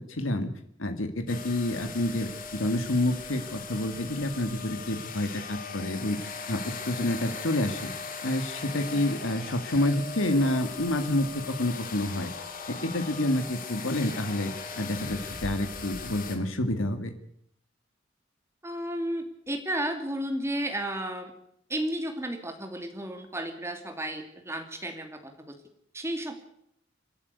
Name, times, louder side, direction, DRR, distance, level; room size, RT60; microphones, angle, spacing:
voice 1, 0.1-0.5 0.8-7.9 8.2-12.3 12.7-17.1, left 1 dB, 85° left, 7 dB, 2.1 m, -28 dB
sound 1, 1.3-16.4, left 5 dB, 45° left, 2.7 m, -39 dB
voice 2, 18.6-21.3 21.7-25.6 25.9-26.3, right 1 dB, 15° right, 5 dB, 2.7 m, -33 dB
28.5 x 11.0 x 8.3 m, 0.73 s
head